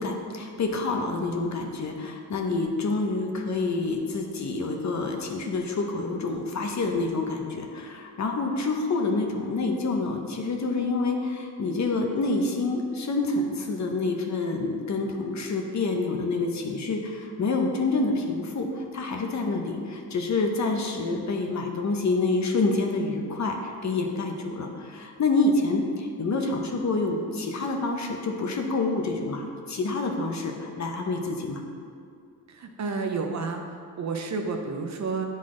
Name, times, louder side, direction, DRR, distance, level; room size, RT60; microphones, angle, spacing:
voice 1, 0.0-31.6, left 3 dB, 45° left, 3 dB, 0.7 m, -27 dB
voice 2, 32.5-35.3, right 4 dB, 45° right, 4 dB, 0.5 m, -31 dB
9.6 x 4.0 x 3.7 m, 2.3 s
wide cardioid pair, 175°, 39 cm